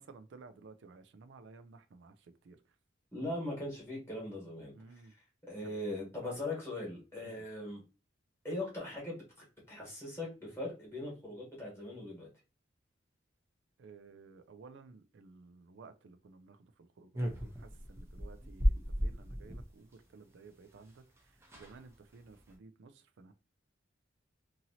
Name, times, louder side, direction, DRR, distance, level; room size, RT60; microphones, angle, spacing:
voice 1, 0.0-2.6 4.7-5.1 5.6-5.7 7.2-7.4 13.8-17.2 17.5-23.3, right 4 dB, 65° right, 0.4 m, -55 dB
voice 2, 3.1-4.7 5.0-5.2 5.4-7.8 8.4-12.3, left 1 dB, 15° left, 1.3 m, -40 dB
sound 1, 17.1-19.7 20.9-21.0 21.2-21.3 21.4-21.8 22.2-22.5, equal, 15° right, 0.6 m, -34 dB
2.9 x 2.7 x 2.7 m
head